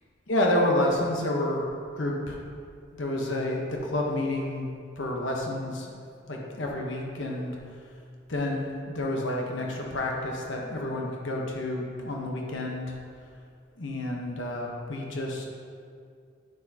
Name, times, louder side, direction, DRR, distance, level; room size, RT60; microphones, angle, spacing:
voice 1, 0.3-1.6 2.0-2.4 2.9-4.7 5.0-6.0 6.3-7.5 8.3-12.9 13.8-15.4, left 1 dB, 70° left, -1 dB, 1.1 m, -29 dB
9.2 x 6.2 x 2.9 m, 2.2 s
head